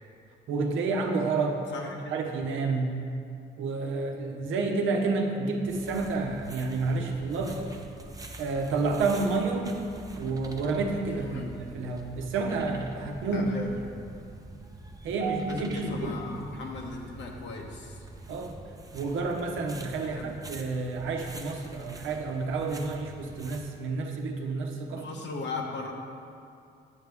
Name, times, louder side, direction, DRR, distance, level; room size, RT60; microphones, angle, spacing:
voice 1, 0.5-1.6 2.1-2.9 3.6-7.7 8.4-9.7 10.2-13.5 15.0-16.5 18.3-18.5 18.9-25.1, right 3 dB, 80° right, 2 dB, 0.9 m, -30 dB
sound 1, 5.6-23.7, right 2 dB, 20° right, 0.7 m, -46 dB
voice 2, 11.1-11.5 13.3-13.7 15.5-18.0 20.0-20.4 24.9-25.9, left 3 dB, 65° left, 0 dB, 1.2 m, -37 dB
8.2 x 7.3 x 3.5 m, 2.5 s
cardioid pair, 90°, 20 cm